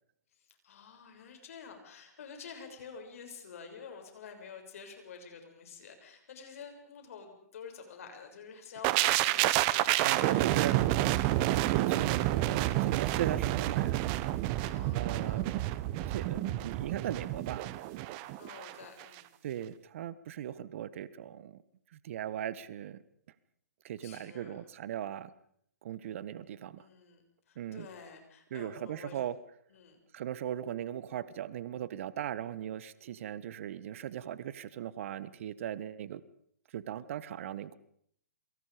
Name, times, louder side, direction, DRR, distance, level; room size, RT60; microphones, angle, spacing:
voice 1, 0.3-9.5 9.9-10.9 14.6-15.5 18.4-19.3 24.0-24.7 26.8-27.2 27.5-29.2 29.7-30.0, left 6 dB, 55° left, 5 dB, 6.9 m, -49 dB
sound 1, 8.8-18.7 19.0-19.2, right 15 dB, 35° right, 1.3 m, -29 dB
voice 2, 10.0-10.8 11.4-14.0 14.9-15.6 16.1-17.7 19.4-21.6 22.0-23.0 23.8-25.3 25.8-26.9 27.6-27.9 28.5-29.4 30.1-36.2 36.7-37.8, right 10 dB, 50° right, 17 dB, 1.4 m, -38 dB
28.5 x 23.5 x 5.2 m, 0.68 s
figure-of-eight pair, 125°, 9 cm